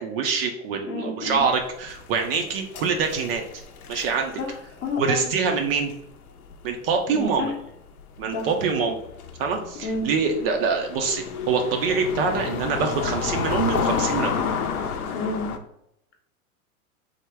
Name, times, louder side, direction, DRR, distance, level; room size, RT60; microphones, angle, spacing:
voice 1, 0.0-3.4 3.9-4.3 5.0-5.9 6.6-7.5 8.2-9.0 9.4-14.3, right 5 dB, 45° right, 4 dB, 0.4 m, -25 dB
voice 2, 0.9-1.4 4.4-5.3 7.1-7.5 8.3-8.5 9.8-10.1 15.1-15.5, left 3 dB, 25° left, 1 dB, 0.7 m, -30 dB
sound 1, 1.4-7.0 7.2-7.4 8.1-15.6, left 6 dB, 75° left, 0.6 m, -30 dB
3.5 x 2.1 x 3.3 m, 0.80 s
hypercardioid pair, 105°, 44 cm